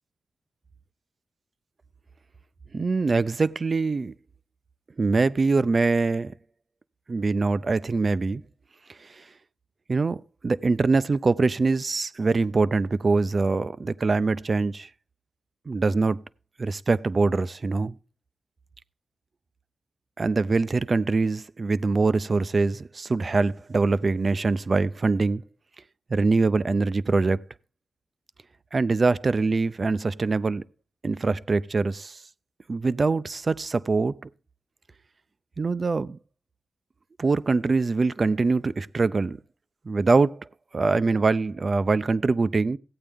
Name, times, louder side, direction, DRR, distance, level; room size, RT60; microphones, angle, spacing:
voice 1, 2.7-4.1 5.0-6.3 7.1-8.4 9.0-9.2 9.9-14.9 15.7-16.2 16.6-18.0 20.2-25.4 26.1-27.4 28.7-30.6 31.0-32.2 32.7-34.2 35.6-36.2 37.2-39.4 39.9-40.5 40.7-42.8, right 3 dB, 40° right, 0.5 m, -23 dB
15.5 x 8.7 x 3.5 m
cardioid pair, 85°, 0 cm